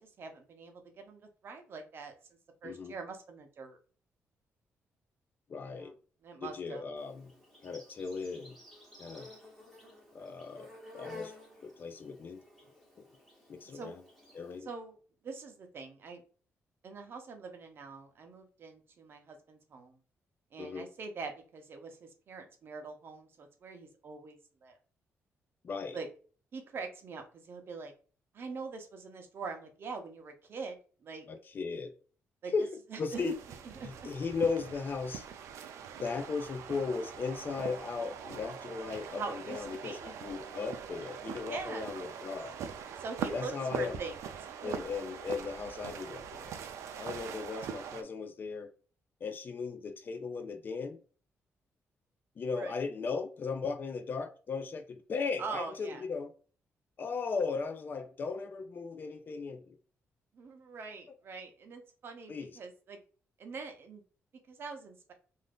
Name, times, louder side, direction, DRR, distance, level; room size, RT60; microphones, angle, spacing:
voice 1, 0.0-2.1 2.6-3.8 5.6-5.9 6.2-6.8 13.7-14.0 14.6-15.0 15.2-16.2 16.8-20.0 20.5-24.8 25.9-26.1 26.5-27.9 28.3-31.3 32.4-32.5 32.9-33.3 33.8-33.9 39.1-40.1 41.5-41.8 43.0-44.2 44.4-44.7 52.5-52.8 55.4-56.0 60.3-63.0 63.4-64.0 64.5-65.1, right 4 dB, 50° right, 0.7 m, -43 dB
voice 2, 2.6-2.9 5.5-5.9 6.4-7.3 7.6-8.6 9.0-9.3 10.1-11.3 11.6-12.4 13.0-13.1 13.5-14.0 14.3-14.7 20.6-20.9 25.6-26.0 31.3-31.9 32.5-33.4 33.8-35.3 36.0-42.6 43.3-44.0 44.6-46.5 47.0-48.7 49.2-51.0 52.4-56.3 57.0-59.8 62.3-62.5, left 4 dB, 40° left, 0.4 m, -37 dB
Insect, 7.0-14.6, left 2 dB, ahead, 1.2 m, -53 dB
sound 1, 33.1-48.0, right 7 dB, 90° right, 0.4 m, -42 dB
2.6 x 2.4 x 3.4 m
cardioid pair, 125°, 5 cm